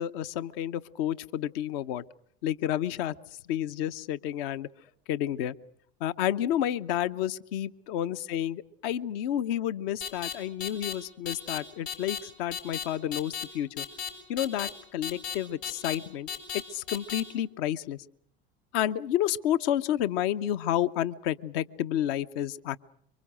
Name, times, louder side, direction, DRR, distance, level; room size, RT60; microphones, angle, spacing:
voice 1, 0.0-2.0 2.4-3.2 3.5-4.7 5.1-5.6 6.0-13.9 14.3-18.0 18.7-22.8, left 11 dB, 65° left, 13 dB, 0.9 m, -30 dB
sound 1, 10.0-10.3 10.6-10.9 11.3-11.6 11.9-12.2 12.5-12.8 13.1-13.4 13.8-14.1 14.4-14.7 15.0-15.3 15.6-16.0 16.3-16.6 16.9-17.2, left 8 dB, 85° left, 6.4 m, -34 dB
26.5 x 24.5 x 6.3 m, 0.67 s
hypercardioid pair, 75°, 31 cm